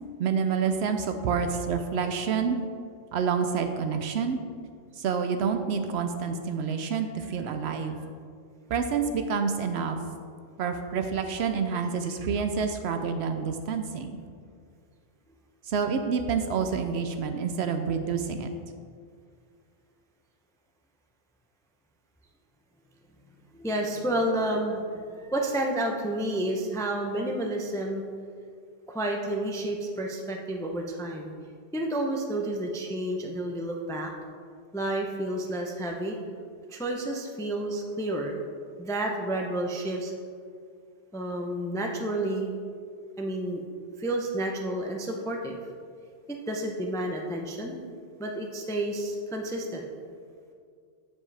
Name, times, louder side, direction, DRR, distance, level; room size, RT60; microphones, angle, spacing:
voice 1, 0.2-2.6 3.1-4.4 5.0-8.0 8.7-10.0 10.6-14.2 15.6-18.5, right 6 dB, 70° right, 7 dB, 0.8 m, -28 dB
voice 2, 23.5-28.0 28.9-31.3 31.7-34.1 34.7-36.2 36.7-38.3 38.8-40.1 41.1-42.5 43.2-43.6 44.0-45.6 46.3-47.8 48.2-49.8, right 1 dB, 5° left, 1 dB, 0.3 m, -30 dB
7.3 x 7.2 x 3.3 m, 2.1 s
omnidirectional pair, 1.2 m